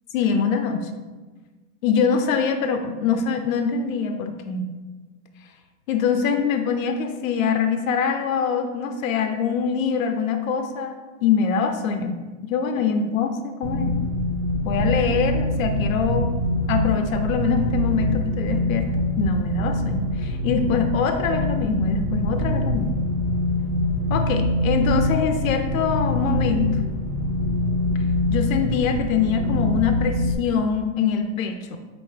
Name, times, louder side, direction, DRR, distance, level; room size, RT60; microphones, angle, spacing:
voice 1, 0.1-0.9 1.8-4.7 5.9-11.0 11.2-13.9 14.6-16.3 16.7-23.0 24.1-26.8 28.3-31.8, left 6 dB, 85° left, 7 dB, 0.5 m, -24 dB
sound 1, 13.6-30.4, left 1 dB, 45° right, 0.5 m, -24 dB
4.4 x 2.5 x 3.2 m, 1.3 s
hypercardioid pair, 125°, 39 cm